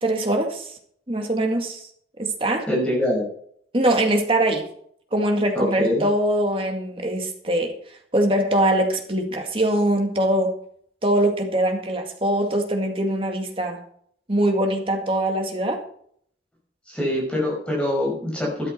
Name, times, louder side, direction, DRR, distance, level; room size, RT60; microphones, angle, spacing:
voice 1, 0.0-0.7 1.1-1.9 2.2-2.7 3.7-4.7 5.1-7.7 8.1-10.5 11.0-13.8 14.3-15.8, right 1 dB, 30° right, 3 dB, 2.1 m, -22 dB
voice 2, 2.7-3.2 5.5-6.0 16.9-18.7, left 1 dB, 5° left, -3 dB, 5.5 m, -24 dB
13.0 x 11.0 x 4.5 m, 0.64 s
head